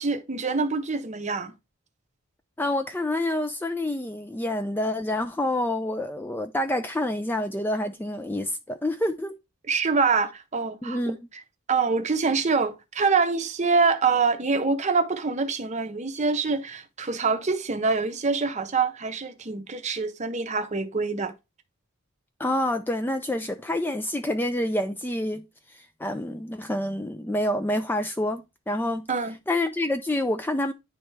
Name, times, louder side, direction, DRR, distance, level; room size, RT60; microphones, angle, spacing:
voice 1, 0.0-1.5 9.7-11.0 11.7-21.3 29.1-29.3, right 4 dB, 35° right, 0.7 m, -25 dB
voice 2, 2.6-9.4 10.8-11.3 22.4-29.1 29.5-30.7, left 1 dB, 10° left, 0.3 m, -28 dB
9.9 x 3.4 x 3.2 m
head